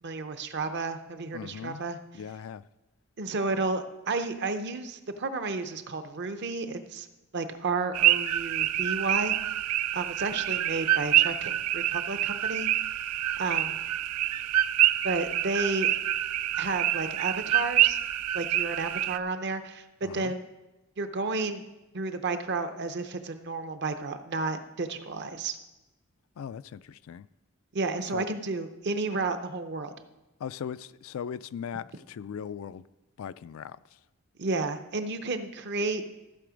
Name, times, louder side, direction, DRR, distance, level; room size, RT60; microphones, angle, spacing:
voice 1, 0.0-2.0 3.2-7.1 7.3-9.4 9.9-12.7 13.4-13.8 15.0-15.9 16.6-18.0 18.3-20.4 21.0-21.6 21.9-25.6 27.7-29.9 34.4-36.0, right 3 dB, 50° right, 0.7 m, -32 dB
voice 2, 1.3-1.8 2.1-2.6 20.0-20.3 26.4-27.3 28.1-28.3 30.4-32.8 33.2-34.0, left 7 dB, 65° left, 0.3 m, -39 dB
sound 1, 7.9-19.2, right 13 dB, 90° right, 0.4 m, -26 dB
14.0 x 6.8 x 5.1 m
head